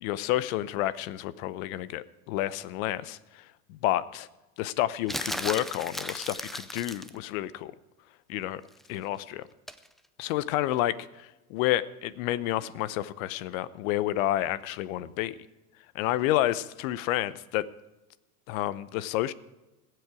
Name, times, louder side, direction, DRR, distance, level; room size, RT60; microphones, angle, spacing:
voice 1, 0.0-4.3 4.6-7.7 8.3-8.6 8.9-9.4 10.2-15.4 15.9-17.7 18.5-19.3, left 14 dB, 65° left, 18 dB, 0.8 m, -30 dB
sound 1, 5.1-7.2 9.7-9.9, equal, ahead, 0.3 m, -35 dB
21.5 x 7.9 x 4.9 m, 1.0 s
hypercardioid pair, 100°, 45 cm